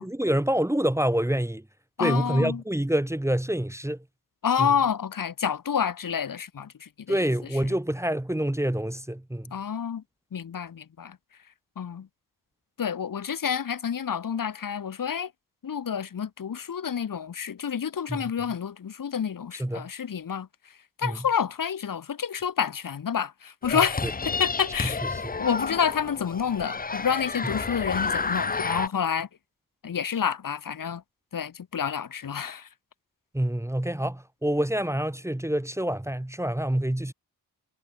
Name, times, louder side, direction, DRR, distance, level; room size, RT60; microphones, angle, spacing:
voice 1, 0.0-1.6 2.0-4.0 4.6-4.7 7.1-9.5 18.1-18.2 19.6-19.9 21.0-21.2 23.7-24.1 25.2-25.3 27.4-27.5 33.3-37.1, right 1 dB, 5° right, 1.5 m, -27 dB
voice 2, 2.0-2.6 4.4-7.3 7.6-7.7 9.5-10.0 10.3-11.2 11.8-12.1 12.8-15.3 15.6-20.5 21.0-25.0 25.4-29.3 29.8-31.0 31.3-32.7, left 7 dB, 55° left, 1.7 m, -29 dB
sound 1, 23.6-28.9, left 4 dB, 20° left, 0.8 m, -30 dB
cardioid pair, 60°, 40 cm